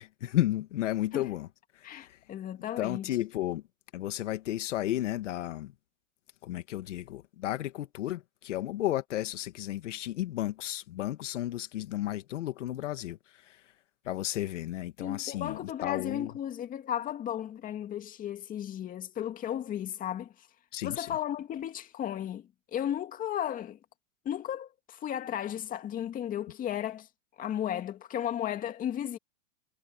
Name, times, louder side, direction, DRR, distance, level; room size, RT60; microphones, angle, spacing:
voice 1, 0.0-1.5 1.8-2.2 2.8-3.6 3.9-5.7 6.4-13.6 14.1-16.3 20.7-21.1, left 14 dB, 70° left, 2.2 m, -33 dB
voice 2, 1.8-3.2 15.0-20.5 20.8-23.8 24.2-27.1 27.4-29.2, left 10 dB, 20° left, 2.2 m, -34 dB
hypercardioid pair, 140°, 38 cm